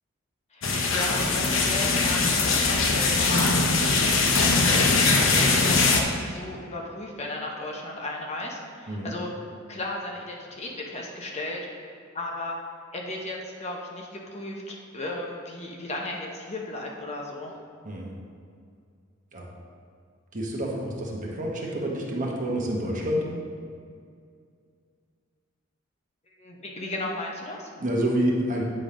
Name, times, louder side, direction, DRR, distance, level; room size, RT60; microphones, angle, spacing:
voice 1, 0.5-3.8 4.4-5.0 5.4-9.3 9.7-12.6 12.9-17.6 26.4-27.7, left 2 dB, 35° left, -1 dB, 0.8 m, -35 dB
sound 1, 0.6-6.0, left 3 dB, 70° left, 0.8 m, -21 dB
voice 2, 20.3-23.2 27.8-28.6, right 1 dB, 40° right, -2 dB, 1.1 m, -28 dB
8.7 x 3.8 x 5.0 m, 2.2 s
head